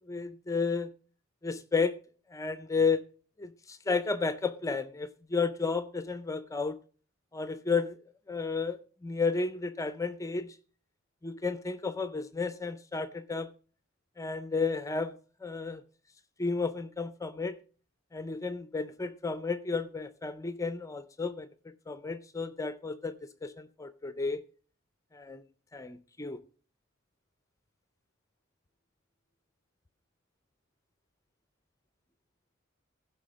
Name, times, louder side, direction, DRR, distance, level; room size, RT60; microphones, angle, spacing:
voice 1, 0.1-0.9 1.4-2.0 2.3-3.0 3.4-6.8 7.3-8.0 8.3-8.8 9.0-10.6 11.2-13.5 14.2-15.2 15.4-15.8 16.4-17.6 18.1-23.2 23.4-24.4 25.1-25.4 25.7-26.4, left 4 dB, 15° left, 0.4 m, -32 dB
15.5 x 5.6 x 6.3 m
head